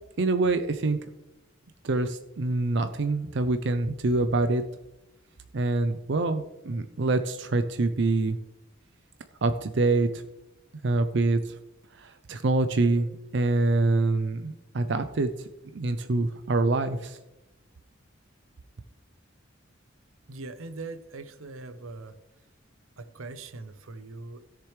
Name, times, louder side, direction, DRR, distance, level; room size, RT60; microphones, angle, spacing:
voice 1, 0.2-1.0 1.8-4.6 5.5-8.4 9.4-10.2 10.8-11.6 12.0-15.3 15.7-17.2, right 2 dB, 60° right, 9 dB, 0.5 m, -25 dB
voice 2, 20.3-22.2 23.0-24.4, right 3 dB, 90° right, 11 dB, 0.8 m, -41 dB
16.5 x 6.8 x 3.2 m, 0.96 s
head